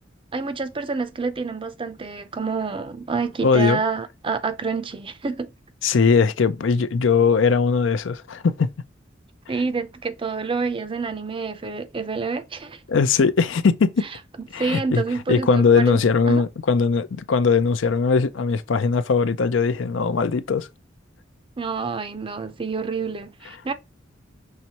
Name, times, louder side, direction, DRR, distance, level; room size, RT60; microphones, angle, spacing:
voice 1, 0.3-5.5 9.5-12.8 14.6-16.0 16.3-16.4 21.6-23.7, right 4 dB, 30° right, 0.5 m, -28 dB
voice 2, 3.4-3.8 5.8-8.7 12.9-14.0 14.5-15.0 15.3-20.7, left 5 dB, 80° left, 0.5 m, -20 dB
5.6 x 3.1 x 2.9 m
head